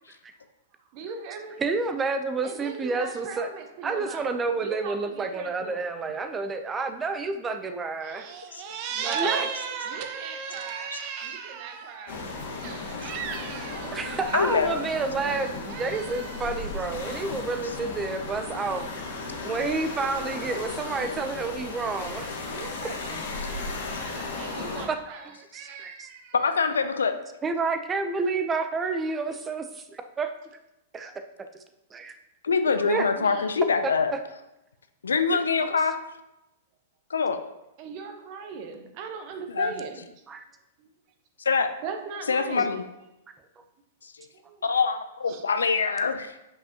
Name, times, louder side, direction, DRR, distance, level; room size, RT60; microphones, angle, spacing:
voice 1, 0.9-1.6 2.4-5.8 8.0-17.5 19.2-19.5 20.5-20.8 22.5-26.3 32.6-33.5 37.8-40.0 40.8-40.9 41.8-42.7 44.4-44.8 45.3-45.4, right 6 dB, 45° right, 5 dB, 1.0 m, -38 dB
voice 2, 1.6-3.5 3.8-8.3 9.1-9.5 13.0-13.1 13.9-19.0 19.4-22.4 24.1-24.3 24.7-25.0 25.5-26.1 27.4-30.3 30.9-31.1 31.9-32.1 32.9-33.1 35.3-35.4 40.3-40.4, right 4 dB, 20° right, 8 dB, 0.6 m, -29 dB
sound 1, 12.1-24.9, left 3 dB, 70° left, 1.6 m, -35 dB
voice 3, 14.3-14.8 26.4-27.1 32.4-34.1 35.0-36.0 37.1-37.4 39.5-39.8 41.4-41.7 42.3-42.8 44.0-44.3 44.6-46.3, left 5 dB, 85° left, 9 dB, 0.5 m, -24 dB
7.4 x 5.4 x 2.9 m, 0.91 s
hypercardioid pair, 115°, 0 cm